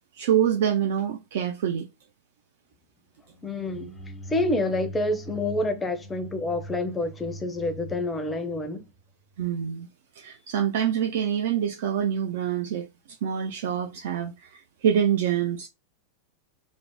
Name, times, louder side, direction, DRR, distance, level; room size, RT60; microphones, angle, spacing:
voice 1, 0.1-1.9 9.4-9.9 10.2-12.9 13.2-15.7, right 9 dB, 55° right, 0.3 m, -26 dB
sound 1, 3.2-9.3, equal, 75° right, 1.1 m, -42 dB
voice 2, 3.4-3.9 4.3-8.8, left 2 dB, 15° left, 0.5 m, -28 dB
2.4 x 2.0 x 3.0 m
figure-of-eight pair, 90°, 0 cm